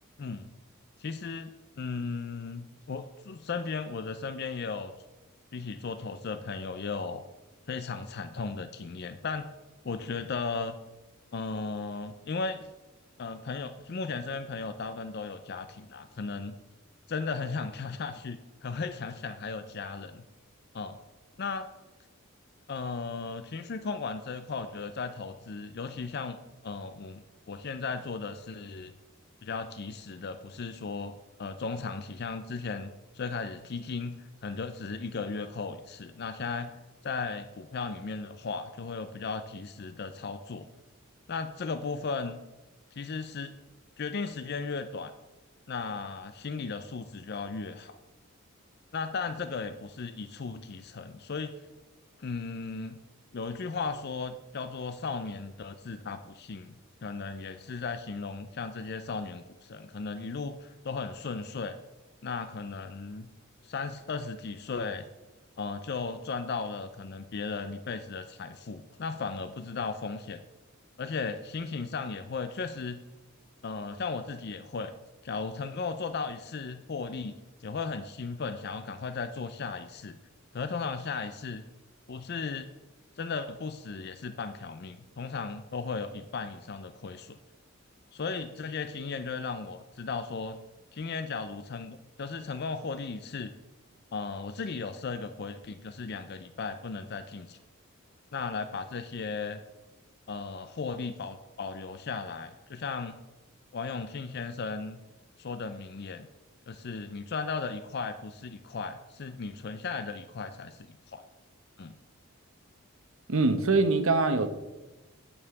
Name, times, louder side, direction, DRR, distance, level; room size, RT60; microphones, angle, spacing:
voice 1, 0.2-0.5 1.0-4.9 5.5-7.2 7.7-9.5 9.8-10.8 11.3-12.7 13.2-16.6 17.1-20.2 20.7-21.0 21.4-21.7 22.7-27.2 27.5-28.9 29.4-36.7 37.0-40.7 41.3-42.4 42.9-43.5 44.0-45.1 45.7-48.0 48.9-51.5 52.2-53.0 53.3-56.7 57.0-61.8 62.2-63.3 63.6-65.0 65.6-70.4 71.0-73.0 73.6-74.9 75.2-77.3 77.6-80.2 80.5-81.6 82.1-82.7 83.2-87.4 88.1-90.6 90.9-93.5 94.1-97.6 98.3-99.6 100.3-103.2 103.7-105.0 105.4-106.3 106.7-111.2 111.8-111.9, left 4 dB, 50° left, 10 dB, 0.5 m, -36 dB
voice 2, 113.3-114.5, right 3 dB, 70° right, 10 dB, 0.9 m, -23 dB
9.4 x 5.4 x 7.0 m, 1.1 s
head